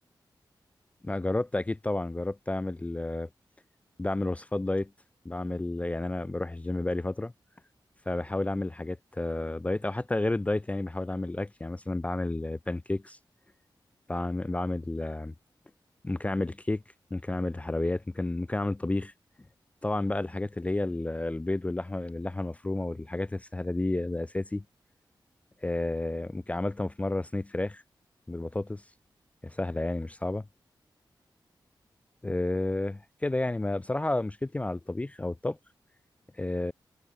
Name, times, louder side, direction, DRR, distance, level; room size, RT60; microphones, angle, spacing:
voice 1, 1.0-3.3 4.0-4.9 5.3-7.3 8.1-13.2 14.1-15.3 16.0-16.8 17.1-19.1 19.8-24.6 25.6-27.8 28.3-28.8 29.4-30.5 32.2-35.6 36.4-36.7, left 2 dB, 15° left, 0.4 m, -31 dB
wide cardioid pair, 110°, 8 cm